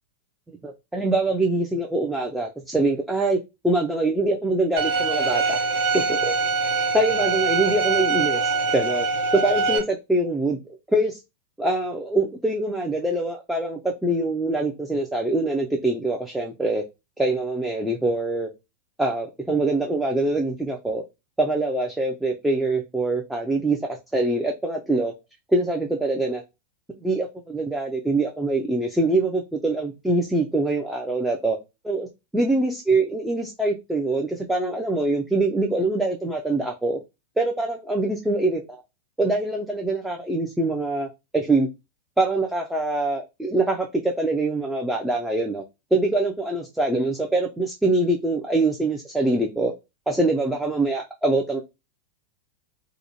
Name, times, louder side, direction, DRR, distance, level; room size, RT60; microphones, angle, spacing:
voice 1, 0.6-3.4 3.6-5.6 5.9-6.3 6.7-9.1 9.4-10.6 10.9-11.2 11.6-16.8 17.2-18.5 19.0-21.0 21.4-25.1 25.5-26.4 27.0-31.6 31.8-32.1 32.3-37.0 37.4-38.8 39.2-41.1 41.3-41.7 42.2-45.6 45.9-49.7 50.1-51.6, right 2 dB, 5° right, 0.4 m, -24 dB
Bowed string instrument, 4.8-9.8, right 4 dB, 70° right, 0.7 m, -23 dB
2.4 x 2.1 x 2.7 m
hypercardioid pair, 105°, 0 cm